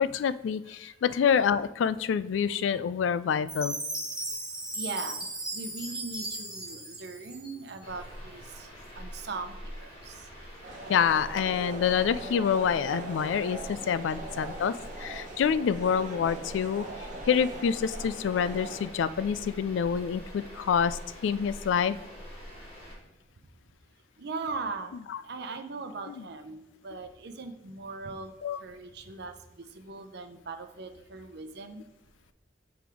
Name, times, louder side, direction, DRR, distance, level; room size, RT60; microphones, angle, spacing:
voice 1, 0.0-3.8 10.9-16.9 17.3-22.0 25.1-25.2 26.2-26.3 28.4-28.6, left 7 dB, 85° left, 15 dB, 0.3 m, -27 dB
Chime, 3.5-7.8, right 1 dB, 5° right, 0.8 m, -36 dB
voice 2, 4.7-5.2 5.5-8.7 8.9-10.2 24.2-24.9 25.2-28.3 28.6-29.3 29.7-31.8, right 3 dB, 60° right, 7 dB, 0.7 m, -39 dB
sound 1, 7.8-23.0, equal, 30° left, 2.2 m, -45 dB
sound 2, 10.6-18.9, right 2 dB, 45° right, 1.0 m, -41 dB
7.6 x 3.5 x 4.8 m, 0.93 s
head